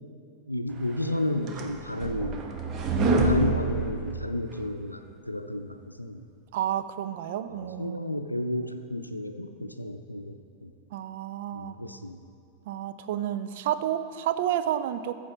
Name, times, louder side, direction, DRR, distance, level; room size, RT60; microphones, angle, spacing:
voice 1, 0.5-2.5 3.0-6.2 7.5-10.3 10.6-10.7 11.5-12.2, left 1 dB, 85° left, 8 dB, 0.5 m, -32 dB
sound 1, 1.0-4.7, right 2 dB, 30° right, 0.9 m, -27 dB
voice 2, 6.5-8.0 10.9-11.8 12.7-15.1, right 11 dB, 55° right, 11 dB, 0.4 m, -30 dB
13.5 x 7.2 x 4.1 m, 2.5 s
figure-of-eight pair, 90°, 0 cm